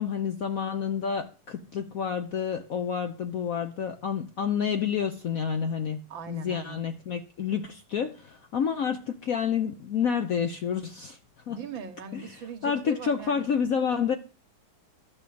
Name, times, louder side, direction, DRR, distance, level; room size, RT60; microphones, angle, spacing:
voice 1, 0.0-6.0 6.3-11.2 11.5-11.6 12.6-14.1, left 7 dB, 60° left, 0.9 m, -29 dB
voice 2, 6.1-6.8 11.5-13.5, right 5 dB, 70° right, 2.0 m, -40 dB
11.5 x 6.2 x 8.5 m
omnidirectional pair, 2.2 m